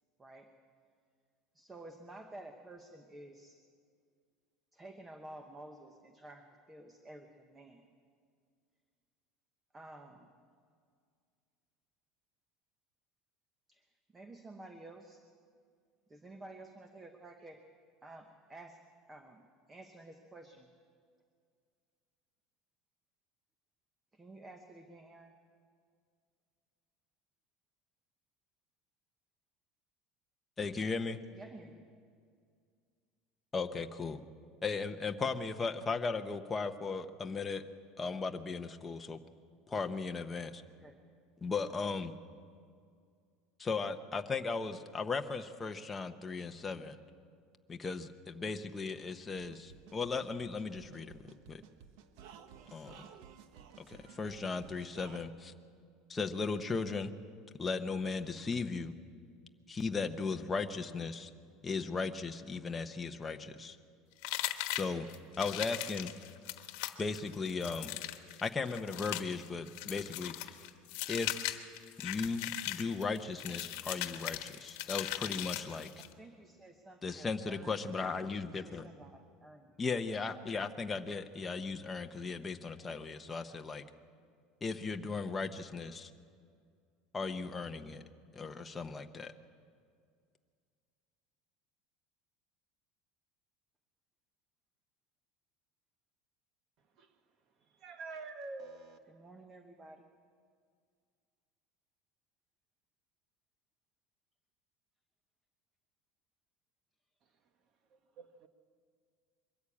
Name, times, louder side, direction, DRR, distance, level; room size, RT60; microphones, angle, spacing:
voice 1, 0.2-0.5 1.5-3.6 4.7-7.9 9.7-10.4 13.7-13.9 14.1-15.2 16.1-17.6 18.0-18.8 19.1-20.7 24.1-25.3 31.3-31.8 40.8-41.0 76.0-78.0 78.5-79.7 99.1-100.1, right 2 dB, 10° right, 1.0 m, -52 dB
voice 2, 30.6-31.2 33.5-34.2 34.6-37.6 38.0-39.2 39.7-40.6 41.4-42.1 43.6-47.0 47.7-51.1 51.5-51.6 52.7-53.1 53.8-55.5 56.1-57.1 57.6-58.9 59.7-61.3 61.6-63.8 64.7-65.1 65.4-66.1 67.0-68.0 68.4-70.5 71.1-71.4 72.0-75.9 77.0-78.8 79.8-83.8 84.6-86.1 87.1-88.0 88.3-89.3, left 4 dB, 15° left, 0.8 m, -37 dB
sound 1, 49.4-55.2, right 8 dB, 65° right, 1.1 m, -55 dB
sound 2, 64.2-76.1, left 15 dB, 70° left, 1.2 m, -39 dB
voice 3, 97.8-99.0 108.2-108.5, right 3 dB, 40° right, 1.3 m, -46 dB
22.5 x 13.5 x 8.6 m
cardioid pair, 160°, 0 cm